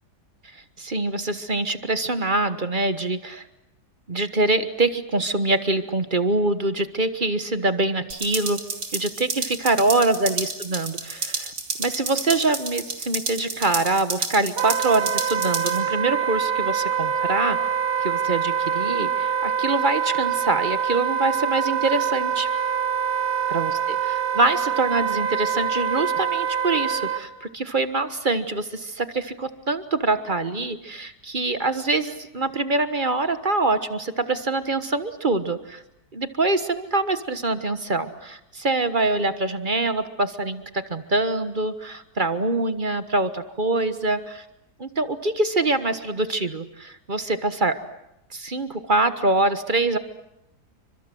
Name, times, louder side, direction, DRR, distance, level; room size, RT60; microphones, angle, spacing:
voice 1, 0.5-3.5 4.1-8.6 8.9-11.5 11.8-17.7 18.0-22.5 23.5-35.8 36.1-44.4 44.8-47.8 48.3-50.0, right 2 dB, 30° right, 10 dB, 1.4 m, -24 dB
sound 1, 8.1-15.8, right 3 dB, 65° right, 3.6 m, -31 dB
Wind instrument woodwind instrument, 14.6-27.2, right 8 dB, 85° right, 2.1 m, -25 dB
29.0 x 25.5 x 7.8 m, 0.84 s
omnidirectional pair, 1.8 m